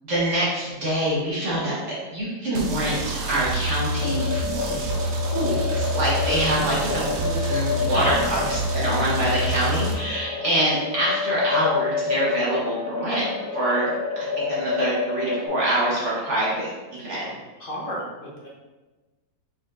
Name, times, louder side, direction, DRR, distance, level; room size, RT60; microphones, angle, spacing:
voice 1, 0.1-4.4 5.3-13.2 13.5-17.2, right 1 dB, 45° right, -7 dB, 1.2 m, -25 dB
sound 1, 2.5-9.9, right 1 dB, 85° right, 1.5 m, -27 dB
sound 2, 4.0-15.5, left 5 dB, 75° left, 1.6 m, -29 dB
voice 2, 17.6-18.5, equal, 35° left, -5 dB, 0.9 m, -31 dB
4.9 x 4.1 x 2.5 m, 1.2 s
omnidirectional pair, 2.0 m